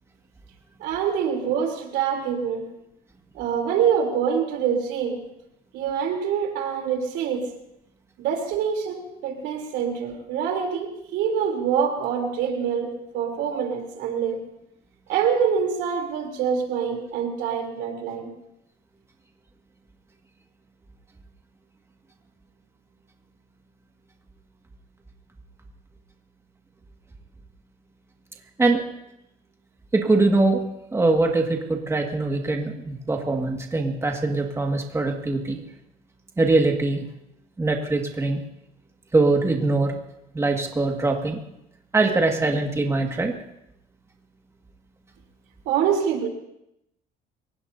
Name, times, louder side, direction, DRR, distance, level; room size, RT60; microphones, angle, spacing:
voice 1, 0.8-2.7 3.3-5.2 5.7-7.5 8.2-14.4 15.1-18.3 45.7-46.3, right 7 dB, 85° right, 2 dB, 3.5 m, -25 dB
voice 2, 29.9-30.6 30.9-35.6 36.4-37.0 37.6-38.4 39.1-40.0 40.3-41.4 41.9-43.3, right 3 dB, 15° right, 2 dB, 1.9 m, -22 dB
29.0 x 17.0 x 2.8 m, 0.83 s
cardioid pair, 110°, 17 cm